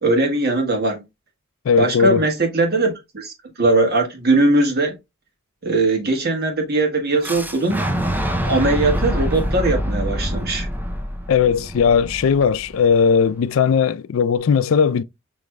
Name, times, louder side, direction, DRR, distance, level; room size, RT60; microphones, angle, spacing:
voice 1, 0.0-1.0 1.8-4.9 5.6-7.8 8.4-10.7, right 2 dB, 50° right, 1.4 m, -20 dB
voice 2, 1.7-2.2 11.3-15.0, left 6 dB, 75° left, 0.4 m, -17 dB
Fire / Explosion, 7.2-13.1, equal, 10° right, 0.5 m, -25 dB
6.4 x 3.1 x 2.2 m
head